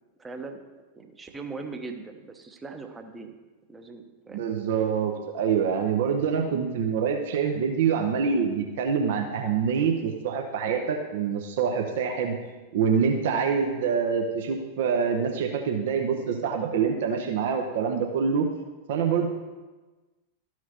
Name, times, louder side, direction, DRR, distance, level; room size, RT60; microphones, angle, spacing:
voice 1, 0.2-0.6 1.0-3.4 3.7-4.5, right 4 dB, 15° right, 5 dB, 0.8 m, -40 dB
voice 2, 4.3-12.4 12.7-18.5 18.9-19.3, right 6 dB, 55° right, 3 dB, 0.7 m, -25 dB
13.0 x 6.0 x 2.9 m, 1.2 s
figure-of-eight pair, 90°, 0 cm